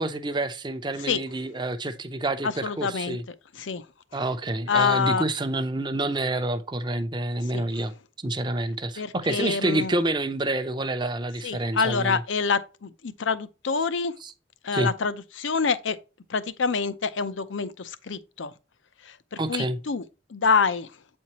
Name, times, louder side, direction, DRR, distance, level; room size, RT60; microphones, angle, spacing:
voice 1, 0.0-3.2 4.1-12.2 14.2-14.3 14.7-14.9 19.4-19.8, right 2 dB, 25° right, 0.6 m, -28 dB
voice 2, 2.4-3.2 3.5-3.8 4.7-5.2 7.5-7.6 9.0-9.9 11.4-14.1 14.6-16.0 16.3-18.5 19.1-20.0 20.3-20.9, left 5 dB, 70° left, 0.6 m, -26 dB
8.2 x 4.4 x 2.9 m
head